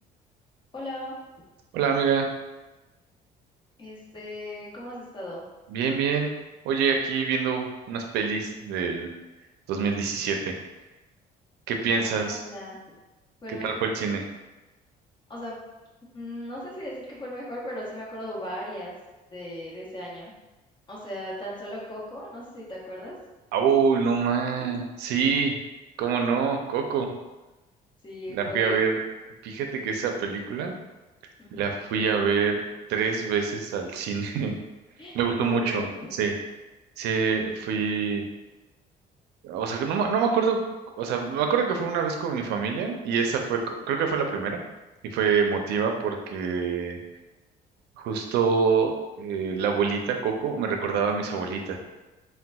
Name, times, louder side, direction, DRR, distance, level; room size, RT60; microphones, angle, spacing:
voice 1, 0.7-1.2 3.8-5.4 11.9-12.8 13.4-13.8 15.3-15.6 16.1-18.9 19.3-20.3 20.9-23.1 28.0-28.8 31.4-31.6 35.0-36.1, left 1 dB, 25° left, -5 dB, 1.0 m, -37 dB
voice 2, 1.7-2.3 5.7-6.3 6.6-9.1 9.7-10.6 11.7-12.4 13.6-14.2 23.5-25.6 26.0-27.1 28.3-29.0 29.4-30.7 31.5-32.6 32.9-34.6 35.1-35.8 36.2-36.3 37.0-38.2 39.4-40.6 41.0-43.6 43.9-44.6 45.1-47.0 48.0-51.8, right 6 dB, 80° right, 4 dB, 0.5 m, -26 dB
3.9 x 2.2 x 2.3 m, 1.1 s
cardioid pair, 110°, 17 cm